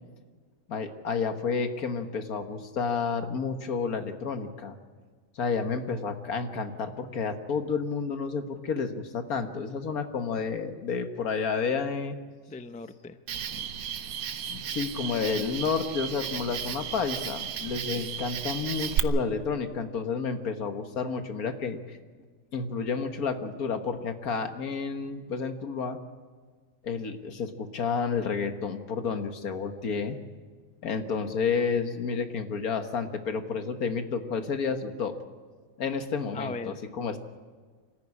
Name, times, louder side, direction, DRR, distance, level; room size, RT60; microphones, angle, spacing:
voice 1, 0.7-4.8 5.4-12.2 13.6-13.7 14.5-22.0 22.5-26.0 26.8-30.2 30.8-35.2 35.8-37.2, left 5 dB, 80° left, 7 dB, 1.8 m, -30 dB
voice 2, 12.5-13.2 17.6-18.1 36.3-36.8, left 3 dB, 10° left, 10 dB, 0.4 m, -39 dB
Cricket, 13.3-19.0, right 9 dB, 75° right, 1.3 m, -34 dB
25.5 x 14.0 x 9.7 m, 1.5 s
omnidirectional pair, 1.5 m